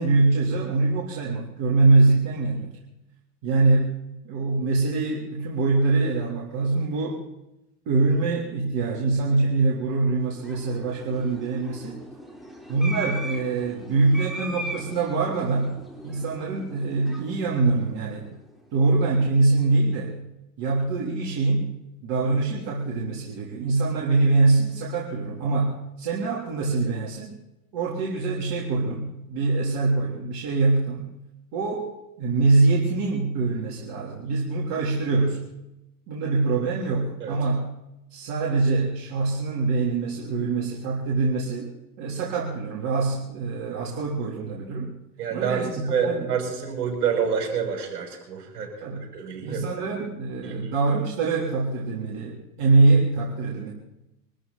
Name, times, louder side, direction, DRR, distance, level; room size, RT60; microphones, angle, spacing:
voice 1, 0.0-2.7 3.4-3.9 4.2-7.2 7.9-12.0 12.7-18.3 18.7-20.2 20.6-21.7 22.0-27.3 27.7-31.0 31.5-31.9 32.2-35.4 36.1-37.7 38.1-41.7 42.0-44.9 45.3-46.3 48.8-49.1 49.4-53.7, right 3 dB, 50° right, -3 dB, 3.7 m, -24 dB
sound 1, 10.1-18.6, equal, ahead, 4.2 m, -39 dB
voice 2, 45.2-48.7 49.1-49.6 50.4-50.7, right 6 dB, 75° right, 0 dB, 6.9 m, -27 dB
24.0 x 14.0 x 4.2 m, 0.89 s
hypercardioid pair, 90°, 46 cm